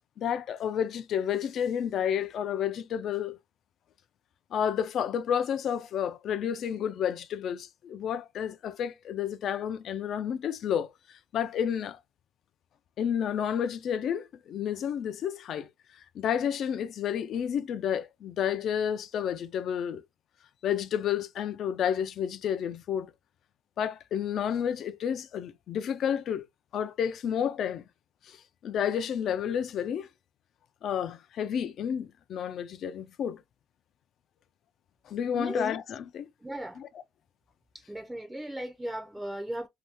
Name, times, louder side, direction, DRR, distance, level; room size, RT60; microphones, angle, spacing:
voice 1, 0.2-3.4 4.5-10.9 11.3-12.0 13.0-15.7 16.1-20.0 20.6-23.1 23.8-26.5 26.7-27.8 28.3-28.4 28.6-30.1 30.8-33.4 35.1-36.3 36.8-36.9, left 8 dB, 60° left, 0.4 m, -30 dB
voice 2, 35.3-35.7 36.4-36.8 37.7-39.7, right 1 dB, 5° right, 0.5 m, -36 dB
2.7 x 2.2 x 3.3 m
cardioid pair, 140°, 0 cm